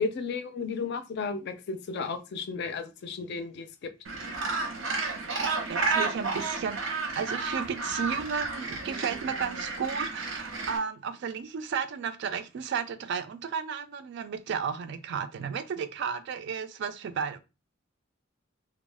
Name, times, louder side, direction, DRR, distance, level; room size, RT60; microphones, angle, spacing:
voice 1, 0.0-3.9, left 4 dB, 60° left, 0.4 m, -33 dB
Gull seagull, 4.0-10.8, right 3 dB, 90° right, 0.8 m, -32 dB
voice 2, 5.4-17.4, right 6 dB, 60° right, 0.3 m, -33 dB
2.4 x 2.0 x 3.2 m
head